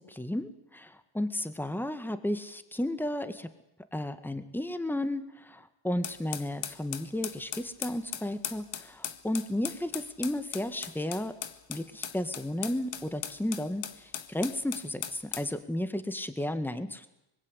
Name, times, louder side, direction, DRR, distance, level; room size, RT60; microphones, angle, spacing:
voice 1, 0.1-3.5 3.9-11.3 11.7-17.1, left 1 dB, 5° left, 10 dB, 1.9 m, -33 dB
sound 1, 6.0-15.5, left 9 dB, 80° left, 1.9 m, -39 dB
24.5 x 22.0 x 8.2 m, 0.89 s
cardioid pair, 95°, 45 cm